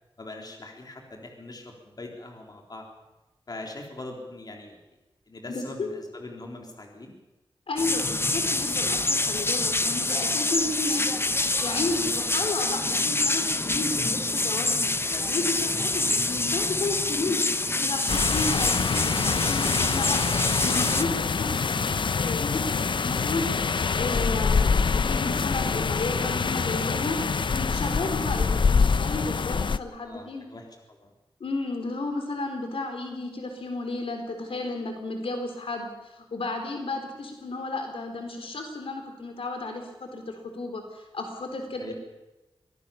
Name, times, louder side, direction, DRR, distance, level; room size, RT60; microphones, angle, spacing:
voice 1, 0.2-2.9 3.5-4.8 5.3-7.1 15.0-15.8 30.0-31.1 41.8-41.9, left 2 dB, 45° left, 1 dB, 3.9 m, -42 dB
voice 2, 5.5-5.9 7.7-11.1 11.4-14.9 15.3-17.4 17.7-23.4 23.9-27.2 27.5-30.4 31.4-41.9, left 2 dB, 85° left, 4 dB, 3.9 m, -33 dB
sound 1, 7.8-21.0, left 2 dB, 25° left, 0.9 m, -26 dB
sound 2, 18.1-29.8, left 5 dB, 60° left, 0.6 m, -25 dB
24.5 x 17.5 x 7.1 m, 1.1 s
wide cardioid pair, 105°, 9 cm